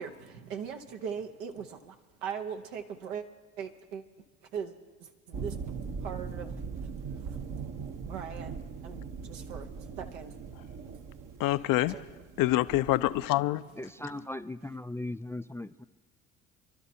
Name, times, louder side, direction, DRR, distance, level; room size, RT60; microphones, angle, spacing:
voice 1, 0.0-1.9 2.2-3.2 3.6-4.0 4.5-4.7 5.0-5.6 6.0-6.6 8.0-8.5 8.8-9.7 10.0-10.3 14.1-14.3 14.6-14.8, right 7 dB, 80° right, 1.0 m, -39 dB
sound 1, 5.3-13.3, right 5 dB, 55° right, 1.0 m, -40 dB
voice 2, 11.4-12.1 12.4-13.6, left 16 dB, 60° left, 0.6 m, -26 dB
voice 3, 13.8-15.9, left 1 dB, 10° left, 0.3 m, -38 dB
28.0 x 12.0 x 2.8 m
hypercardioid pair, 55°, 38 cm